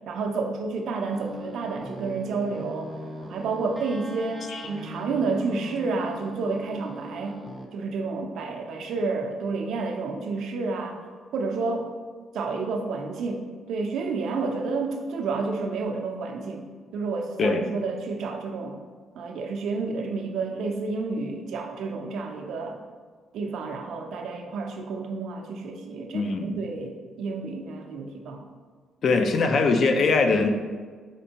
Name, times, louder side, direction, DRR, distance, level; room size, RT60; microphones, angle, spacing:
voice 1, 0.0-2.9 3.3-7.4 7.7-11.0 11.3-11.9 12.3-13.4 13.7-16.6 16.9-18.8 19.2-22.8 23.3-28.5, right 4 dB, 75° right, 3 dB, 0.4 m, -30 dB
sound 1, 1.1-7.7, equal, 10° right, 0.5 m, -41 dB
voice 2, 26.1-26.6 29.0-30.5, left 3 dB, 55° left, 5 dB, 0.4 m, -22 dB
4.3 x 2.6 x 2.8 m, 1.5 s
cardioid pair, 90°, 0 cm